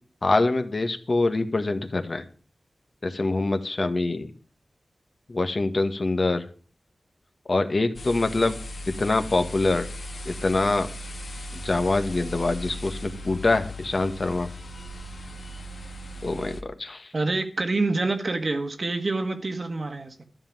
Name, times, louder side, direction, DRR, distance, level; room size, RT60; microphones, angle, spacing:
voice 1, 0.2-2.2 3.0-4.3 5.3-6.4 7.5-8.6 9.0-9.9 10.2-10.9 11.5-14.5 16.2-17.1, left 2 dB, 45° left, 1.4 m, -24 dB
sound 1, 7.9-16.6, equal, 70° left, 1.6 m, -37 dB
voice 2, 17.1-20.2, right 3 dB, 50° right, 1.5 m, -27 dB
13.0 x 5.6 x 9.3 m
wide cardioid pair, 95°, 0 cm